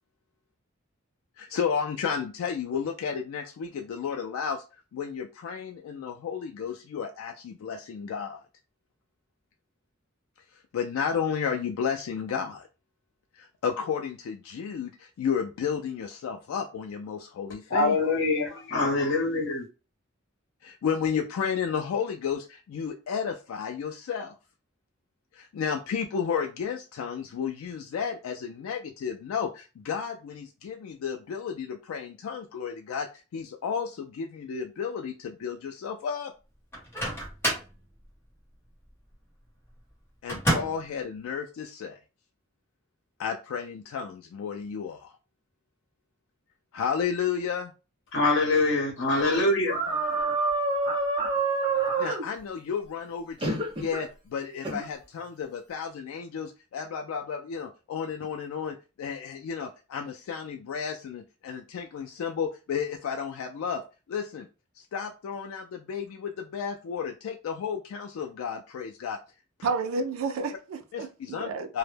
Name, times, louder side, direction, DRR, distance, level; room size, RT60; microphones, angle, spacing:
voice 1, 1.4-4.6 4.9-8.4 10.7-12.7 13.4-18.0 20.6-24.3 25.3-36.3 40.2-42.0 43.2-45.1 46.7-47.7 52.0-63.8 64.1-64.5 64.8-69.2 69.6-69.7 70.9-71.8, left 7 dB, 90° left, 0.3 m, -32 dB
voice 2, 17.7-19.6 48.1-49.8, left 2 dB, 60° left, 0.9 m, -24 dB
Microwave oven, 36.7-37.8 40.3-40.9, right 1 dB, 10° left, 1.0 m, -28 dB
sound 1, 49.7-52.2 53.4-54.0 54.6-54.8, right 3 dB, 25° right, 0.6 m, -27 dB
voice 3, 69.6-71.7, right 4 dB, 75° right, 0.4 m, -31 dB
2.1 x 2.1 x 3.1 m
head